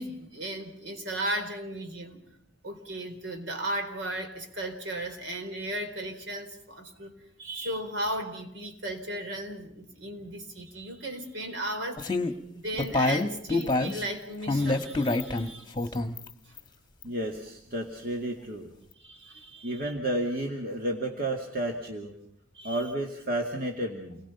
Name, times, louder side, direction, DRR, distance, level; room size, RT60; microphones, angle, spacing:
voice 1, 0.0-2.2 2.6-7.1 7.4-15.7 16.5-16.6 19.0-19.9 22.5-22.9, right 1 dB, 65° right, 5 dB, 4.1 m, -36 dB
sound 1, 12.0-12.3 12.7-14.0 14.5-15.5 15.8-16.3 16.6-16.7 17.0-17.1, left 2 dB, 20° left, 1.4 m, -26 dB
voice 2, 17.0-18.7 19.6-22.1 22.6-24.2, right 1 dB, 50° right, 1 dB, 2.2 m, -31 dB
29.0 x 21.0 x 5.8 m, 0.74 s
head